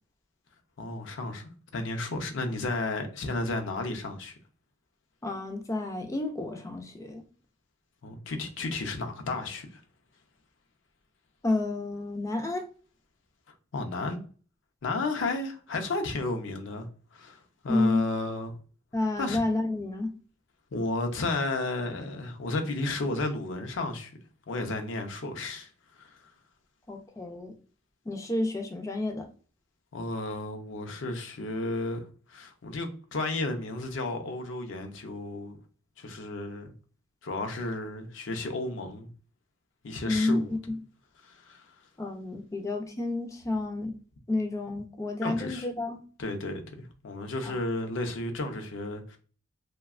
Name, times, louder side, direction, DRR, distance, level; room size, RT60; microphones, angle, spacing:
voice 1, 0.8-4.4 8.0-9.8 13.7-14.2 14.8-18.6 19.2-19.4 20.7-24.1 24.5-25.7 26.0-26.2 29.9-35.6 36.0-36.7 37.2-39.1 39.8-40.5 41.2-41.7 45.2-45.7 46.2-49.2, left 2 dB, 70° left, 0.5 m, -33 dB
voice 2, 5.2-7.2 11.4-12.7 17.7-18.1 18.9-20.1 26.9-27.5 28.1-29.3 40.1-40.8 42.0-43.9 44.3-46.0 47.4-47.6, left 2 dB, 15° left, 0.3 m, -30 dB
2.7 x 2.2 x 2.3 m
head